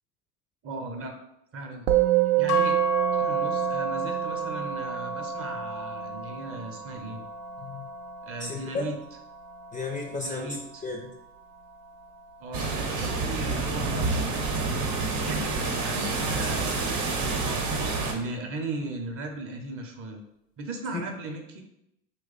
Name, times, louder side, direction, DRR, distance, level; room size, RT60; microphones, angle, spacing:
voice 1, 0.6-1.1 1.5-1.9 2.4-2.8 3.2-7.2 8.2-9.0 10.1-10.8 12.4-14.5 15.1-17.6 18.1-20.2 20.6-21.6, right 2 dB, 35° right, 3 dB, 0.7 m, -37 dB
Musical instrument, 1.9-11.4, right 18 dB, 75° right, 0.5 m, -29 dB
sound 1, 2.5-10.7, left 2 dB, 65° left, 0.6 m, -34 dB
voice 2, 7.6-7.9 8.4-8.8 9.7-10.6 10.8-11.1 20.9-21.0, left 3 dB, 20° left, 1 dB, 0.4 m, -33 dB
sound 2, 12.5-18.1, right 3 dB, 55° right, 0.9 m, -28 dB
3.0 x 2.3 x 3.8 m, 0.84 s
hypercardioid pair, 90°, 41 cm